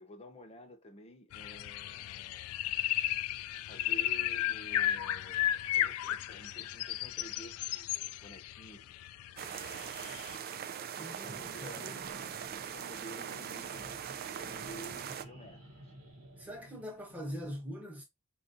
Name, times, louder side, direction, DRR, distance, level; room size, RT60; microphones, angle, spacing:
voice 1, 0.0-2.6 3.6-9.0 9.4-10.0 10.8-12.1 12.4-15.9, equal, 30° left, 0.7 m, -52 dB
sound 1, 1.3-10.4, left 13 dB, 80° left, 0.3 m, -34 dB
sound 2, 9.4-15.2, right 8 dB, 45° right, 0.3 m, -41 dB
voice 2, 11.0-11.9 16.4-18.0, equal, 10° right, 1.0 m, -42 dB
sound 3, 11.2-17.4, equal, 90° right, 1.2 m, -52 dB
4.4 x 2.6 x 2.6 m
head